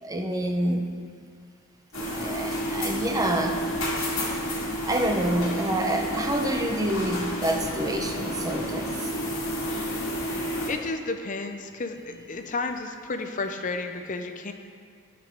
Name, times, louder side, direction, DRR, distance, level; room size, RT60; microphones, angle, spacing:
voice 1, 0.0-0.9 2.1-3.6 4.8-8.9, right 1 dB, 15° right, 3 dB, 0.6 m, -27 dB
sound 1, 1.9-10.7, equal, 70° left, 1.9 m, -30 dB
voice 2, 10.7-12.0 12.3-14.5, left 3 dB, 35° left, 6 dB, 0.5 m, -31 dB
14.0 x 5.9 x 3.5 m, 2.2 s
head